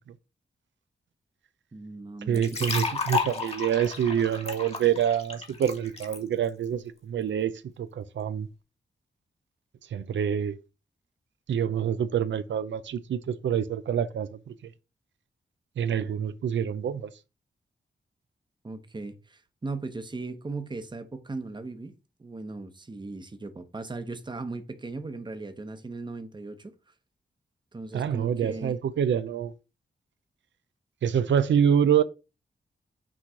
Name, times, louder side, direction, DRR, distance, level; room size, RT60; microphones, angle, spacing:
voice 1, 1.7-2.7 18.6-21.9 22.2-26.7 27.7-28.8, right 3 dB, 25° right, 0.8 m, -38 dB
sound 1, 2.3-6.2, left 4 dB, 35° left, 1.5 m, -32 dB
voice 2, 2.3-7.5 7.8-8.5 9.9-10.6 11.5-14.5 15.8-17.1 27.9-29.5 31.0-32.0, right 8 dB, 85° right, 0.4 m, -26 dB
6.2 x 3.1 x 5.6 m
wide cardioid pair, 120°, 19 cm